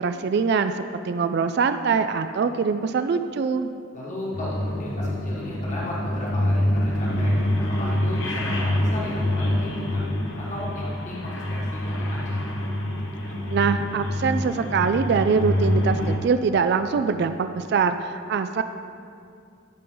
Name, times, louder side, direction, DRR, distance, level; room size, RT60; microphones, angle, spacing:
voice 1, 0.0-3.7 13.5-18.6, right 5 dB, 55° right, 9 dB, 0.3 m, -23 dB
voice 2, 3.9-7.3 7.7-10.1 10.4-12.4, left 1 dB, 40° left, -6 dB, 1.5 m, -35 dB
sound 1, 4.3-16.2, left 1 dB, 75° left, 1.1 m, -26 dB
13.5 x 5.3 x 3.8 m, 2.4 s
head